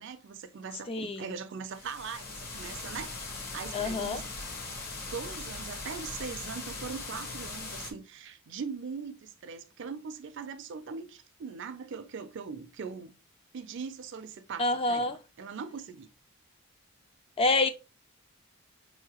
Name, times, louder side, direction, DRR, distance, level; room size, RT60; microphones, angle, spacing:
voice 1, 0.0-4.3 5.1-13.1 13.5-16.1, right 6 dB, 55° right, 0.4 m, -41 dB
voice 2, 0.9-1.3 3.7-4.2 14.6-15.2 17.4-17.7, left 2 dB, 25° left, 0.3 m, -27 dB
sound 1, 1.7-7.9, left 3 dB, 45° left, 0.9 m, -40 dB
5.3 x 2.7 x 2.9 m
head